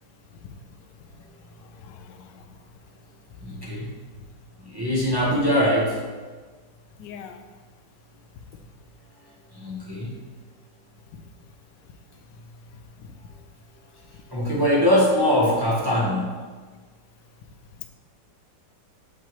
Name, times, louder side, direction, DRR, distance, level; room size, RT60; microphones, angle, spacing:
voice 1, 1.1-2.5 7.0-7.4 11.1-11.2 13.0-13.1, left 7 dB, 75° left, 6 dB, 1.2 m, -44 dB
voice 2, 3.4-3.9 4.6-6.0 9.5-10.1 14.3-16.4, equal, 20° right, -5 dB, 0.7 m, -22 dB
7.2 x 5.6 x 3.0 m, 1.4 s
omnidirectional pair, 2.1 m